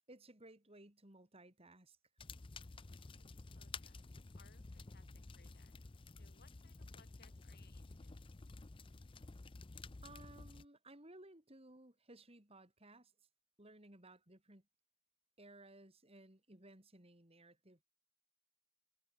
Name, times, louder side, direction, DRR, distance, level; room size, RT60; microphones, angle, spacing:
voice 1, 0.1-2.0 10.0-13.1 13.6-14.6 15.4-17.8, right 2 dB, 25° right, 3.2 m, -59 dB
sound 1, 2.2-10.6, left 3 dB, 25° left, 0.5 m, -53 dB
voice 2, 3.1-8.2, left 4 dB, 45° left, 7.5 m, -70 dB
head